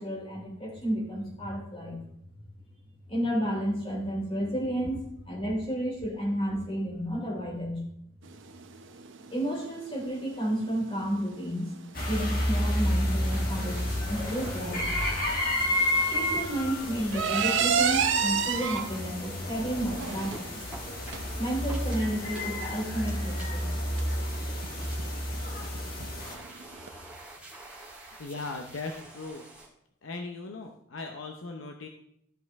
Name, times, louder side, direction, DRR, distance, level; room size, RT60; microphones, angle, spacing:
voice 1, 0.0-2.0 3.1-7.8 9.3-11.7 12.1-15.2 16.1-20.6 21.4-23.8, equal, 25° left, -3 dB, 3.1 m, -31 dB
sound 1, 8.2-26.9, right 6 dB, 60° right, 0.7 m, -33 dB
sound 2, 11.9-26.4, left 1 dB, 40° left, 1.7 m, -31 dB
sound 3, 13.3-29.7, right 2 dB, 5° right, 2.1 m, -49 dB
voice 2, 28.2-29.5 30.0-31.9, left 3 dB, 65° left, 3 dB, 0.7 m, -38 dB
14.0 x 5.3 x 3.5 m, 0.75 s
head